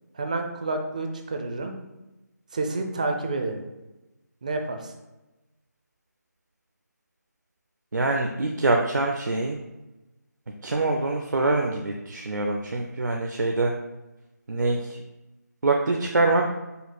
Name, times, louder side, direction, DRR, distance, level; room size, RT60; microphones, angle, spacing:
voice 1, 0.1-1.7 2.5-3.6 4.4-4.9, right 2 dB, 25° right, 5 dB, 0.4 m, -29 dB
voice 2, 7.9-9.6 10.6-13.7 14.5-15.0 15.6-16.5, right 2 dB, 80° right, 1 dB, 0.5 m, -24 dB
5.1 x 2.4 x 4.0 m, 1.0 s
figure-of-eight pair, 165°, 10 cm